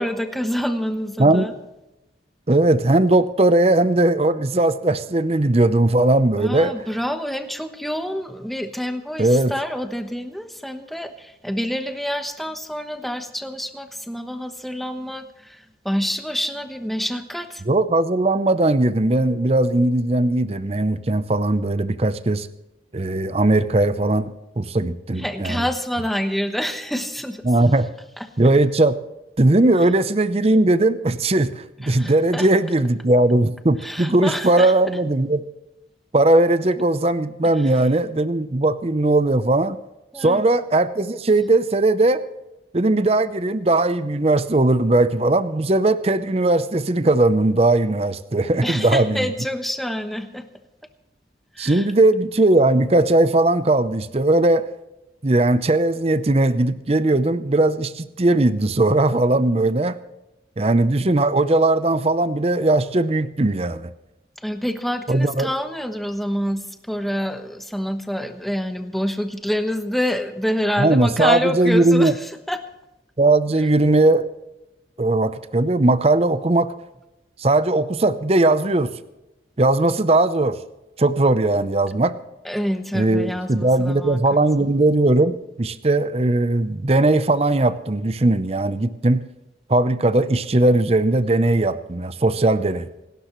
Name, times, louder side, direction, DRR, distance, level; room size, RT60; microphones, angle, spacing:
voice 1, 0.0-1.5 6.4-17.6 25.2-27.4 28.2-28.3 31.8-32.5 33.8-34.7 37.6-37.7 40.1-40.5 48.6-50.5 51.5-51.9 64.4-72.6 82.4-84.4, equal, ahead, 7 dB, 1.0 m, -27 dB
voice 2, 2.5-6.7 9.2-9.5 17.7-22.5 22.9-25.6 27.4-27.9 28.4-29.0 29.4-35.4 36.1-39.8 40.2-42.2 42.7-49.3 51.6-54.7 55.2-60.0 60.6-63.9 65.1-65.5 70.8-72.1 73.2-74.3 75.0-76.7 77.4-78.9 79.6-80.6 81.0-82.1 82.9-89.2 89.7-92.9, right 2 dB, 35° right, 13 dB, 0.6 m, -18 dB
27.0 x 12.5 x 3.1 m, 0.97 s
head